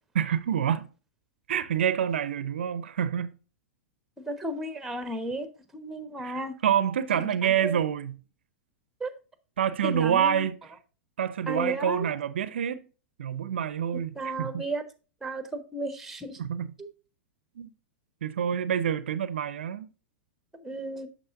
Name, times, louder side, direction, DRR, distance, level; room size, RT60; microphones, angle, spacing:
voice 1, 0.1-0.9 1.5-3.3 6.2-8.2 9.6-10.6 11.2-12.8 13.2-14.6 16.4-16.7 17.6-17.7 18.2-19.9, right 9 dB, 70° right, 0.5 m, -27 dB
voice 2, 4.3-6.6 7.1-7.8 9.0-9.1 9.8-10.5 11.5-12.1 14.2-14.8 15.2-16.4 16.8-16.9 20.6-21.1, right 2 dB, 5° right, 1.1 m, -34 dB
8.8 x 6.5 x 2.5 m
hypercardioid pair, 105°, 6 cm